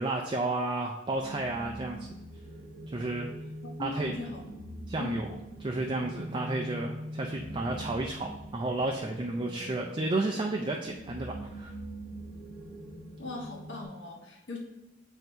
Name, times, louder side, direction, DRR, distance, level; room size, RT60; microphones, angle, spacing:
voice 1, 0.0-2.1 2.9-3.3 3.8-4.3 4.9-11.7, right 2 dB, 25° right, 1 dB, 0.4 m, -32 dB
sound 1, 1.1-13.8, equal, 5° right, 1.1 m, -43 dB
voice 2, 3.6-4.4 4.9-5.2 13.2-14.6, left 3 dB, 70° left, -2 dB, 1.0 m, -39 dB
7.9 x 2.7 x 4.4 m, 0.98 s
head